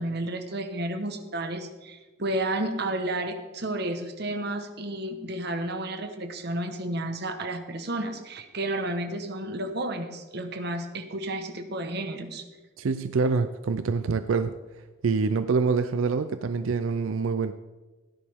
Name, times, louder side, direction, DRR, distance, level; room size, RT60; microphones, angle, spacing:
voice 1, 0.0-12.4, right 1 dB, 55° right, 7 dB, 1.2 m, -32 dB
voice 2, 12.8-14.5 15.0-17.5, right 4 dB, 90° right, 10 dB, 0.5 m, -25 dB
16.5 x 10.0 x 3.6 m, 1.2 s
head